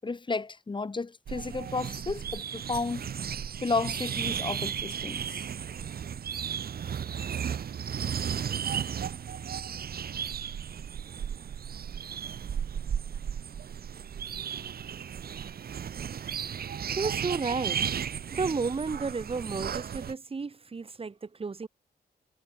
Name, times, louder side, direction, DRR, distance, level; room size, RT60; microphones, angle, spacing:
voice 1, 0.0-3.1 3.6-5.4, left 3 dB, 30° left, 7.5 m, -32 dB
sound 1, 1.3-20.1, right 8 dB, 65° right, 2.7 m, -34 dB
voice 2, 17.0-17.8 18.3-21.7, right 4 dB, 35° right, 7.9 m, -32 dB
wide cardioid pair, 125°, 17 cm